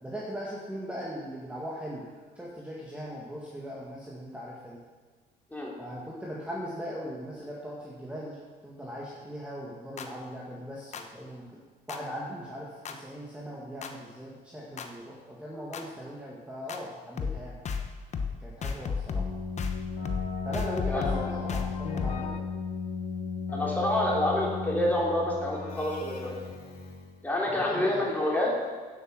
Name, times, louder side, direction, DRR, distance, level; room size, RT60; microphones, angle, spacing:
voice 1, 0.0-4.8 5.8-11.6 11.9-17.6 18.4-19.3 20.4-22.4 27.5-28.0, equal, 5° right, -4 dB, 1.8 m, -39 dB
sound 1, 10.0-10.1 10.9-11.0 11.9-12.0 12.8-12.9 13.8-13.9 14.8-14.9 15.7-15.8 16.7-16.8 17.2-17.4 17.6-17.9 18.1-18.3 18.6-19.3 19.6-19.8 20.0-20.3 20.5-22.4, left 5 dB, 40° left, 1.0 m, -32 dB
Keyboard (musical), 19.1-27.2, left 5 dB, 65° left, 3.0 m, -36 dB
voice 2, 23.5-26.4 27.2-28.5, left 1 dB, 10° left, -4 dB, 3.3 m, -27 dB
9.4 x 7.9 x 6.3 m, 1.5 s
cardioid pair, 110°, 17 cm